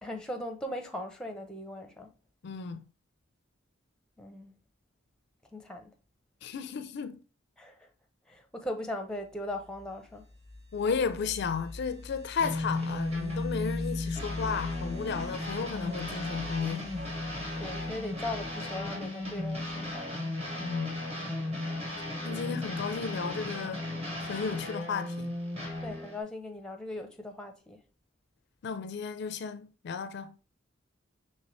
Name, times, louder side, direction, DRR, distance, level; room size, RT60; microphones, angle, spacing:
voice 1, 0.0-2.1 4.2-4.5 5.5-5.9 7.6-7.7 8.3-10.3 17.6-20.1 25.8-27.8, left 1 dB, 5° left, 0.6 m, -39 dB
voice 2, 2.4-2.8 6.4-7.2 10.7-16.9 20.6-20.9 22.2-23.9 24.2-25.3 28.6-30.3, left 5 dB, 60° left, 0.4 m, -33 dB
sound 1, 9.4-19.9, left 2 dB, 50° right, 1.7 m, -45 dB
sound 2, 12.4-26.2, left 2 dB, 30° right, 1.4 m, -35 dB
5.4 x 3.2 x 3.0 m
head